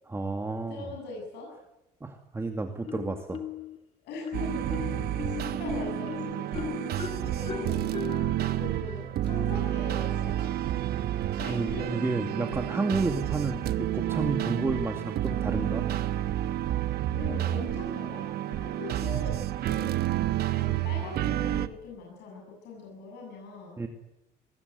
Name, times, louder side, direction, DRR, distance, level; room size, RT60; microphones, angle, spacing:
voice 1, 0.1-0.9 2.0-3.4 11.5-15.8 23.8-23.9, right 3 dB, 15° right, 4 dB, 2.3 m, -31 dB
voice 2, 0.7-1.5 4.0-6.7 7.2-7.9 8.5-10.4 11.4-11.9 13.1-13.3 17.1-20.0 20.4-23.8, left 3 dB, 80° left, -1 dB, 7.8 m, -41 dB
Marimba xylophone, 2.8-3.8 4.2-9.7, left 7 dB, 35° left, 2.7 m, -38 dB
sound 1, 4.3-21.7, right 13 dB, 70° right, 1.2 m, -30 dB
24.0 x 20.5 x 9.4 m, 0.96 s
cardioid pair, 110°, 17 cm